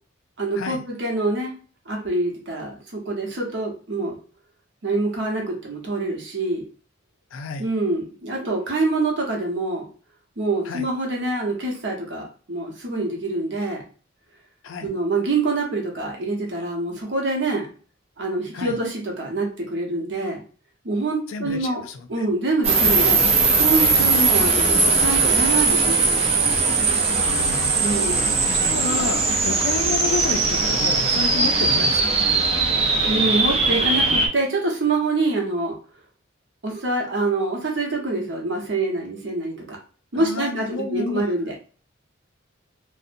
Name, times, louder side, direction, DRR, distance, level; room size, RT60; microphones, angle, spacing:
voice 1, 0.4-1.5 1.9-4.2 4.8-6.6 7.6-9.9 10.4-13.8 14.8-17.7 18.2-20.4 20.8-21.8 22.1-23.2 23.6-26.2 27.8-28.3 33.1-35.7 36.6-39.8 40.1-41.5, right 2 dB, 65° right, -1 dB, 0.8 m, -25 dB
voice 2, 7.3-7.7 10.7-10.9 14.6-14.9 18.5-18.7 21.3-22.3 27.1-27.8 28.5-32.1 40.1-41.3, left 4 dB, 80° left, 8 dB, 0.4 m, -30 dB
sound 1, 22.6-34.3, right 4 dB, 30° right, 0.4 m, -19 dB
2.6 x 2.0 x 2.5 m, 0.40 s
head